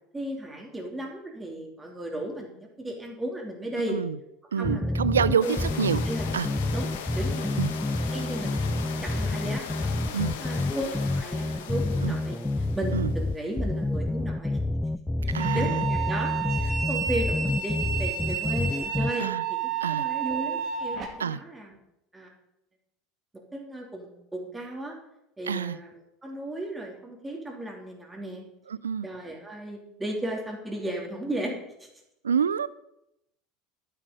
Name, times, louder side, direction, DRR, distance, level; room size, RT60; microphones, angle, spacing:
voice 1, 0.1-4.0 4.6-5.5 6.0-6.3 6.7-6.9 7.1-7.7 8.1-12.4 12.7-14.6 15.2-21.8 22.1-22.3 23.5-24.9 25.4-28.4 29.0-31.9, right 1 dB, 15° right, 0 dB, 3.1 m, -35 dB
voice 2, 4.5-6.0 6.3-6.5 7.6-7.7 10.1-10.3 12.0-12.2 12.9-13.1 15.3-15.8 19.2-19.4 19.8-20.1 21.2-21.4 25.5-25.8 28.7-29.1 32.2-32.7, right 7 dB, 80° right, 18 dB, 0.4 m, -27 dB
sound 1, 4.6-19.1, left 2 dB, 10° left, 0.6 m, -28 dB
sound 2, 5.4-13.4, left 7 dB, 70° left, 1.6 m, -39 dB
sound 3, 15.4-21.1, right 8 dB, 40° right, 2.5 m, -31 dB
11.5 x 9.9 x 5.2 m, 0.85 s
figure-of-eight pair, 75°, 0 cm